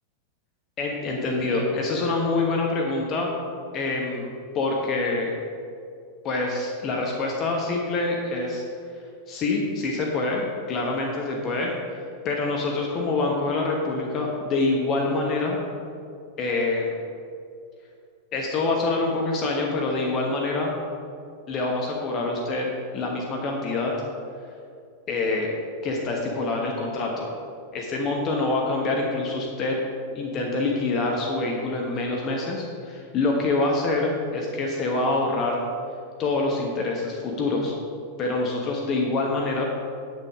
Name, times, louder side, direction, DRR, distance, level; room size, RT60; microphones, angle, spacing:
voice 1, 0.8-3.3 3.7-4.3 4.5-5.3 6.2-8.6 9.3-15.6 16.4-16.9 18.3-20.7 21.5-22.7 22.9-23.9 25.1-25.5 25.8-27.3 27.7-29.8 30.1-35.6 36.2-37.7 38.2-39.6, left 3 dB, 35° left, 0 dB, 1.2 m, -26 dB
9.2 x 6.3 x 4.9 m, 2.4 s
figure-of-eight pair, 90°, 0 cm